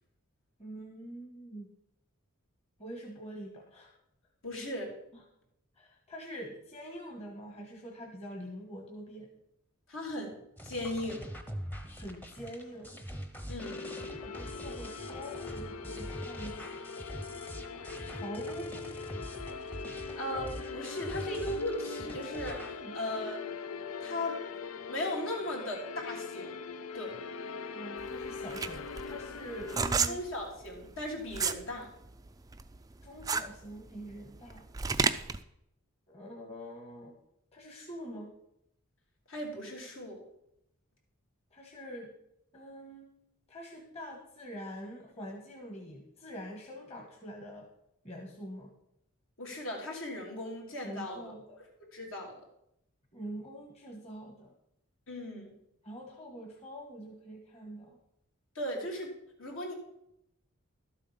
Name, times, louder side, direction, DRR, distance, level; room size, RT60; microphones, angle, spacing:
voice 1, 0.6-1.7 2.8-3.9 5.1-5.2 5.8-9.3 11.9-12.9 14.2-16.7 18.1-18.9 22.7-23.1 27.7-30.2 33.0-34.7 36.1-37.2 37.5-38.3 41.5-42.1 42.5-43.1 43.5-47.7 48.0-48.7 50.8-51.6 53.1-54.5 55.8-58.0, equal, 30° left, 0 dB, 1.6 m, -45 dB
voice 2, 4.4-4.9 9.9-10.4 10.6-11.2 13.5-13.8 20.1-23.4 24.0-24.4 24.9-26.5 26.9-27.2 30.1-31.9 39.3-40.2 49.4-51.2 51.9-52.4 55.1-55.5 58.5-59.1 59.4-59.7, left 1 dB, 70° left, -1 dB, 3.1 m, -37 dB
sound 1, 10.6-22.8, equal, 10° left, 0.9 m, -44 dB
sound 2, 13.6-29.9, left 4 dB, 90° left, 0.6 m, -41 dB
sound 3, 28.0-31.6 32.0-35.4, right 5 dB, 15° right, 0.4 m, -31 dB
12.5 x 7.5 x 5.7 m, 0.79 s
head